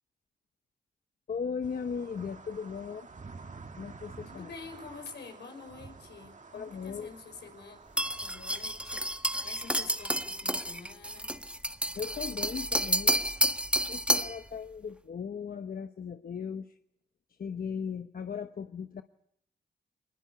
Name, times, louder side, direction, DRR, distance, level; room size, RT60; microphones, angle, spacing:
voice 1, 1.3-3.1 3.8-4.5 6.5-7.1 12.0-13.3 13.9-16.8 17.4-19.0, left 6 dB, 55° left, 8 dB, 1.0 m, -37 dB
sound 1, 1.6-10.4, right 4 dB, 45° right, 1.9 m, -50 dB
voice 2, 4.3-7.8 8.2-9.1 9.4-11.3, left 5 dB, 80° left, 5 dB, 5.6 m, -47 dB
sound 2, 8.0-14.4, equal, 5° right, 1.4 m, -30 dB
22.5 x 20.5 x 8.2 m, 0.74 s
cardioid pair, 60°, 17 cm